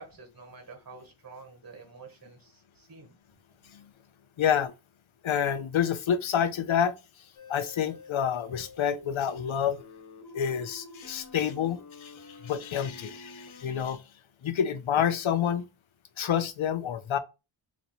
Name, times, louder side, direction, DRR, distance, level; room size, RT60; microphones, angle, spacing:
voice 1, 0.0-3.1, right 4 dB, 45° right, 1.6 m, -48 dB
voice 2, 4.4-4.7 5.2-6.9 7.5-9.8 10.3-14.0 14.4-15.6 16.2-17.2, left 8 dB, 80° left, 0.6 m, -28 dB
sound 1, 7.3-13.6, left 3 dB, 55° left, 1.2 m, -48 dB
3.0 x 2.7 x 4.2 m
wide cardioid pair, 95°, 47 cm